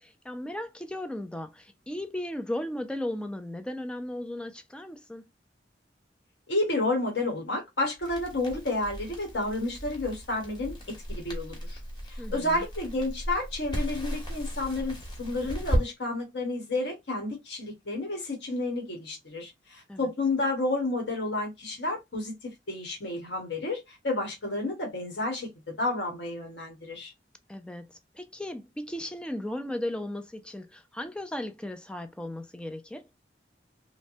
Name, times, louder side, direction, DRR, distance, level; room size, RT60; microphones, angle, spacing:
voice 1, 0.0-5.3 12.2-12.6 19.9-20.1 27.5-27.9 28.2-33.0, left 1 dB, 5° left, 0.4 m, -36 dB
voice 2, 6.5-11.8 12.1-22.4 22.7-27.1, left 2 dB, 85° left, 1.2 m, -31 dB
Crackle, 8.0-15.9, equal, 25° left, 1.1 m, -35 dB
3.2 x 2.1 x 2.6 m
head